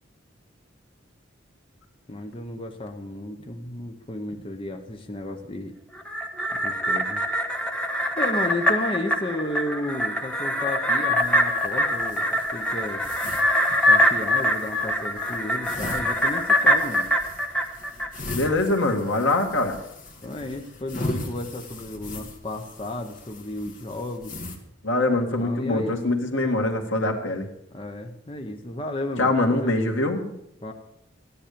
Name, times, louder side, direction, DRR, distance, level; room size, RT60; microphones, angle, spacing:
voice 1, 2.1-5.8 6.5-7.2 8.2-13.1 13.9-17.1 20.2-24.4 25.4-26.0 27.7-29.9 30.6-30.7, left 1 dB, 30° left, 4 dB, 0.9 m, -33 dB
sound 1, 6.0-18.5 18.9-19.0, equal, 5° left, 1.2 m, -24 dB
sound 2, 11.2-24.6, left 2 dB, 45° left, 2.2 m, -39 dB
voice 2, 18.3-19.8 24.8-27.5 29.2-30.3, left 2 dB, 80° left, 3 dB, 2.1 m, -23 dB
14.0 x 10.5 x 6.8 m, 0.79 s
head